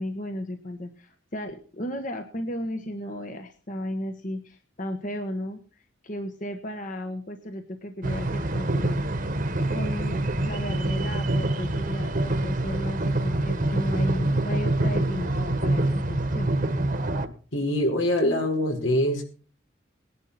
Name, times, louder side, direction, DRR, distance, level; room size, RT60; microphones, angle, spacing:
voice 1, 0.0-5.6 6.0-9.0 9.7-16.5, left 1 dB, 40° left, 5 dB, 1.4 m, -34 dB
sound 1, 8.0-17.3, right 1 dB, 45° right, 1.5 m, -26 dB
voice 2, 17.5-19.2, left 1 dB, 80° left, 2 dB, 4.9 m, -24 dB
19.5 x 11.0 x 4.3 m, 0.39 s
head